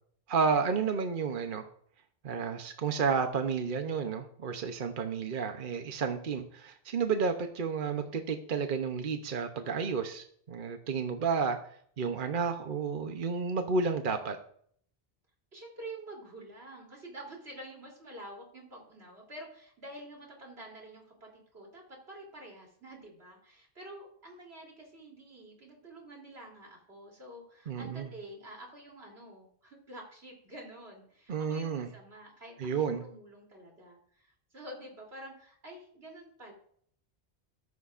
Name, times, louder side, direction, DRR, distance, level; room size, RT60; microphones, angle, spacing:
voice 1, 0.3-1.7 2.2-11.6 12.0-14.4 27.7-28.1 31.3-31.9 32.6-33.0, right 5 dB, 55° right, 6 dB, 1.0 m, -31 dB
voice 2, 15.5-36.5, right 1 dB, 90° right, -1 dB, 3.6 m, -48 dB
14.5 x 13.5 x 2.5 m, 0.62 s
omnidirectional pair, 1.0 m